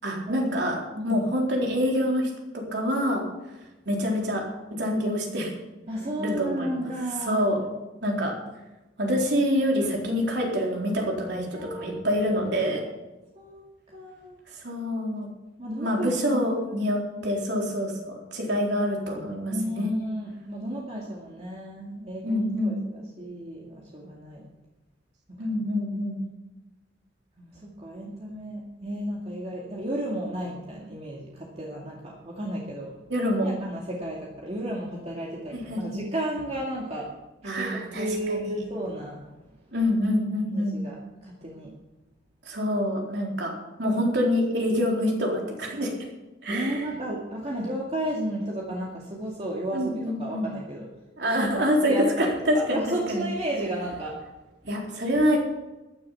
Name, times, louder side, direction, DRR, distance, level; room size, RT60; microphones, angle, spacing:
voice 1, 0.0-3.2 3.9-4.4 4.7-5.5 6.2-6.9 7.3-7.6 8.0-8.3 9.0-12.8 14.5-15.3 15.8-19.9 22.2-22.8 25.4-26.2 33.1-33.6 35.5-36.0 37.4-38.5 39.7-40.8 42.4-43.5 43.8-45.9 46.4-46.9 49.7-50.5 51.2-52.8 53.1-53.2 54.7-55.4, equal, 65° right, -1 dB, 4.1 m, -26 dB
voice 2, 5.9-7.5 11.5-12.2 13.3-13.6 13.9-14.4 15.6-16.4 17.1-17.4 19.5-24.4 25.4-25.6 27.4-32.9 33.4-37.1 37.5-39.3 40.5-41.7 46.5-50.9 51.4-54.2, right 1 dB, 35° right, -3 dB, 2.2 m, -33 dB
14.0 x 10.5 x 5.9 m, 1.1 s
head